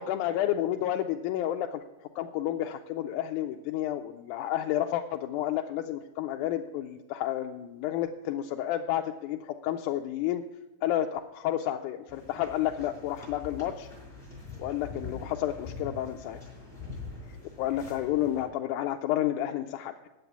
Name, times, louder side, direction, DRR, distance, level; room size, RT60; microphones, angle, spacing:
voice 1, 0.0-1.8 2.2-10.4 10.8-13.9 14.6-16.4 17.6-20.1, left 12 dB, 85° left, 4 dB, 2.0 m, -30 dB
sound 1, 12.1-18.5, left 3 dB, 15° left, 4.6 m, -44 dB
9.2 x 8.0 x 7.0 m, 1.1 s
omnidirectional pair, 3.5 m